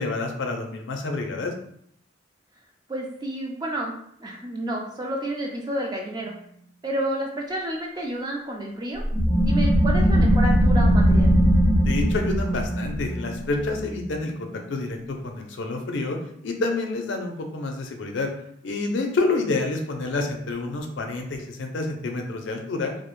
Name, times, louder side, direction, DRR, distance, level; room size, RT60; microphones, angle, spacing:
voice 1, 0.0-1.5 11.8-16.2 16.4-18.3 18.6-22.9, left 3 dB, 70° left, 3 dB, 0.4 m, -28 dB
voice 2, 2.9-6.3 6.8-9.0 9.4-11.3, right 1 dB, 20° right, 0 dB, 0.3 m, -30 dB
sound 1, 9.0-14.4, equal, 50° right, 0.9 m, -20 dB
2.3 x 2.0 x 3.0 m, 0.68 s
head